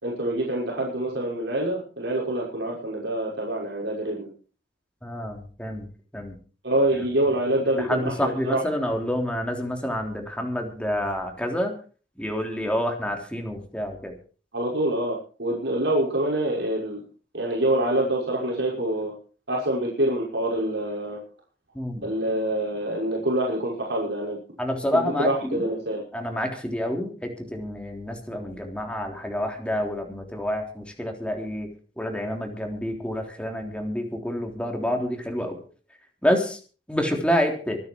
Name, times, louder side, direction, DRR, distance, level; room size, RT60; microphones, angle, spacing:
voice 1, 0.0-4.3 6.6-8.8 14.5-17.0 17.3-19.1 19.5-21.2 22.0-24.4 24.9-26.0, right 1 dB, 70° right, -4 dB, 6.0 m, -26 dB
voice 2, 5.0-5.8 6.1-6.3 7.8-11.7 12.2-14.1 21.8-22.0 24.6-25.6 26.1-31.7 32.0-35.6 36.2-36.6 36.9-37.8, equal, 5° left, 2 dB, 3.5 m, -28 dB
25.0 x 9.7 x 4.6 m, 0.39 s
head